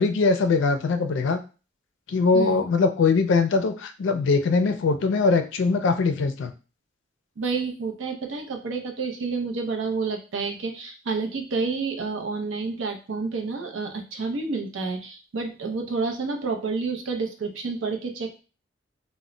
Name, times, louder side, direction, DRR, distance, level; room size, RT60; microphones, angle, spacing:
voice 1, 0.0-1.4 2.1-6.5, left 4 dB, 70° left, 8 dB, 0.4 m, -22 dB
voice 2, 7.4-18.4, right 4 dB, 85° right, 3 dB, 0.5 m, -29 dB
2.1 x 2.1 x 3.7 m, 0.34 s
head